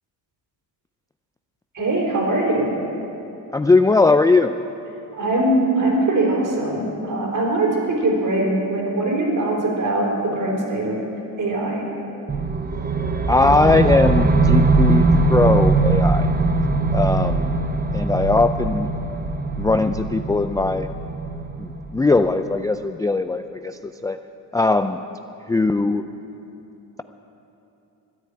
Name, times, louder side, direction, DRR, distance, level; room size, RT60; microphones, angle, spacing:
voice 1, 1.7-2.7 5.2-11.1 11.4-11.9, right 2 dB, 45° right, -1 dB, 4.3 m, -21 dB
voice 2, 3.5-4.5 13.3-16.3 16.9-17.6 17.9-18.9 19.6-20.9 21.6-24.2 24.5-25.0 25.5-26.0, left 3 dB, 10° left, 9 dB, 0.3 m, -19 dB
sound 1, 12.3-22.4, right 3 dB, 20° right, 0.9 m, -20 dB
13.0 x 10.5 x 8.7 m, 2.9 s
cardioid pair, 80°, 43 cm